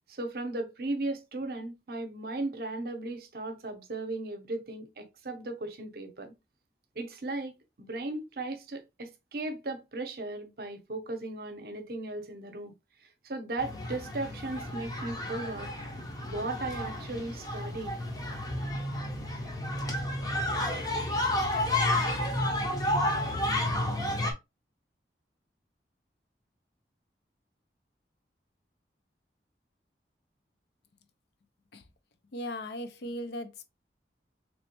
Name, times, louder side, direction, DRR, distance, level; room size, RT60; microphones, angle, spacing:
voice 1, 0.1-6.3 7.0-12.7 13.0-15.7 16.2-18.0, right 2 dB, 60° right, 0.7 m, -36 dB
sound 1, 13.6-24.3, left 1 dB, 20° left, 0.6 m, -31 dB
voice 2, 32.3-33.6, left 1 dB, 70° left, 0.5 m, -37 dB
3.1 x 3.0 x 2.9 m
head